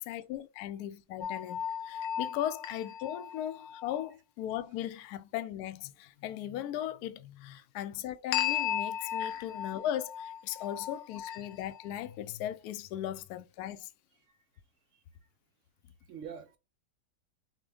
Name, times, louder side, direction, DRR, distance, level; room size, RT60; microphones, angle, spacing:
voice 1, 0.0-13.9, left 11 dB, 70° left, 1.0 m, -38 dB
sound 1, 1.2-4.1 8.3-11.9, left 9 dB, 90° left, 1.3 m, -36 dB
voice 2, 16.0-16.6, right 7 dB, 75° right, 0.7 m, -46 dB
6.1 x 2.2 x 3.4 m
omnidirectional pair, 1.9 m